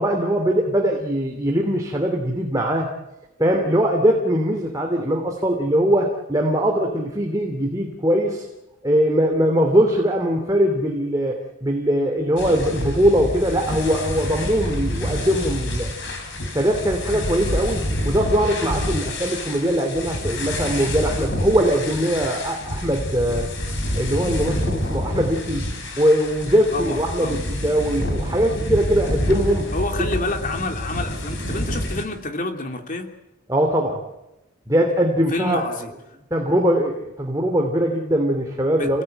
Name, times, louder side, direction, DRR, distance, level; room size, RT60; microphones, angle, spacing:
voice 1, 0.0-2.9 3.4-8.5 8.8-15.9 16.5-23.5 24.0-25.6 26.0-29.7 33.5-34.0 34.7-35.7 36.3-39.0, equal, 15° right, 1 dB, 2.9 m, -21 dB
sound 1, 12.4-32.0, left 1 dB, 55° left, 5.7 m, -27 dB
voice 2, 26.7-27.4 29.7-33.1 35.3-35.9 38.7-39.0, left 2 dB, 40° left, 5 dB, 3.0 m, -28 dB
29.5 x 18.5 x 9.2 m, 0.96 s
head